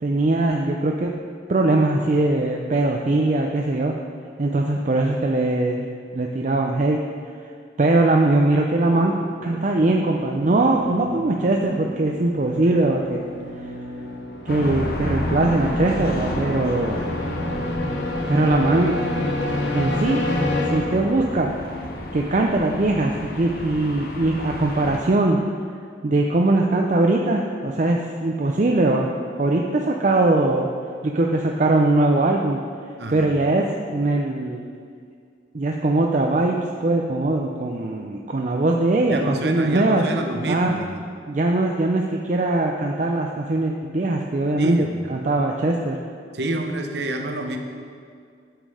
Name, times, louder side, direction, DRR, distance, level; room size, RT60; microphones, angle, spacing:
voice 1, 0.0-1.1 1.5-3.9 4.4-5.9 6.1-7.0 7.8-9.1 9.4-13.2 14.5-17.0 18.3-19.0 19.7-20.2 20.7-21.5 22.1-25.4 26.0-29.1 29.4-30.7 31.0-32.6 33.1-34.7 35.5-40.0 40.5-40.7 41.3-46.0, right 2 dB, 40° right, 1 dB, 0.5 m, -21 dB
sound 1, 8.9-21.5, left 1 dB, 75° left, 1.1 m, -30 dB
sound 2, 14.5-25.0, left 1 dB, 55° left, 0.9 m, -31 dB
voice 2, 33.0-33.3 39.1-41.1 44.6-45.1 46.3-47.6, right 1 dB, 65° right, 4 dB, 0.9 m, -28 dB
8.9 x 7.3 x 4.9 m, 2.2 s
head